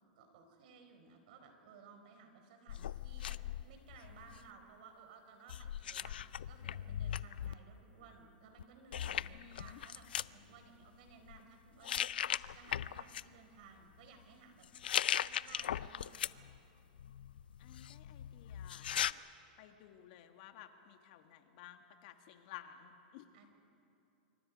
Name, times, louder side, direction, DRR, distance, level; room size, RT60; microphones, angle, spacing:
voice 1, 0.2-3.4 3.6-6.2 6.5-14.7 15.2-16.5 23.3-23.5, right 5 dB, 60° right, 5 dB, 4.3 m, -58 dB
sound 1, 2.7-4.5 5.5-7.5 8.6-8.7 8.9-10.3 11.1-11.4 11.8-13.2 14.6-16.6 17.0-19.1, left 10 dB, 90° left, 0.5 m, -39 dB
voice 2, 9.3-9.8 17.6-19.1 19.6-23.3, left 12 dB, 55° left, 7 dB, 1.7 m, -55 dB
27.0 x 25.0 x 5.2 m, 2.7 s
hypercardioid pair, 140°, 5 cm